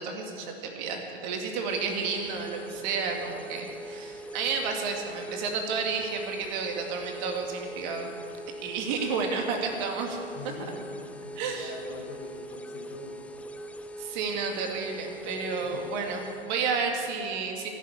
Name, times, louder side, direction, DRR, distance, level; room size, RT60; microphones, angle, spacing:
voice 1, 0.0-8.1 8.6-10.2 11.4-11.7 14.0-17.7, right 5 dB, 45° right, 3 dB, 2.2 m, -31 dB
sound 1, 1.6-16.6, right 1 dB, 5° left, 0.4 m, -42 dB
voice 2, 10.3-13.3 15.6-15.9, left 4 dB, 35° left, 0 dB, 3.4 m, -44 dB
15.0 x 7.5 x 9.4 m, 2.5 s
hypercardioid pair, 115°, 30 cm